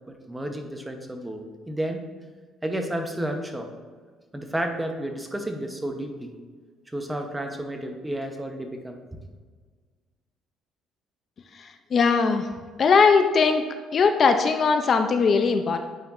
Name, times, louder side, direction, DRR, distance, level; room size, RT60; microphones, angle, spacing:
voice 1, 0.1-2.0 2.6-3.7 4.3-6.4 6.9-9.0, right 1 dB, 10° right, 4 dB, 0.9 m, -31 dB
voice 2, 11.5-12.5 12.8-13.6 13.9-15.8, left 5 dB, 50° left, 7 dB, 0.5 m, -20 dB
9.1 x 4.5 x 2.5 m, 1.5 s
supercardioid pair, 85°, 0 cm